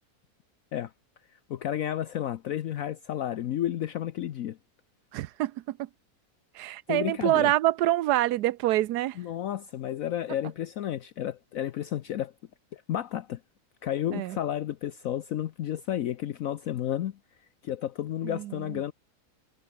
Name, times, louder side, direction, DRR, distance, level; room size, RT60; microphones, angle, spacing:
voice 1, 1.5-4.6 6.9-7.5 9.2-12.3 12.7-13.4 13.8-17.2 17.6-18.9, left 11 dB, 65° left, 1.1 m, -32 dB
voice 2, 5.1-5.9 6.5-9.2 14.1-14.4 18.2-18.8, right 15 dB, 85° right, 1.2 m, -26 dB
omnidirectional pair, 1.7 m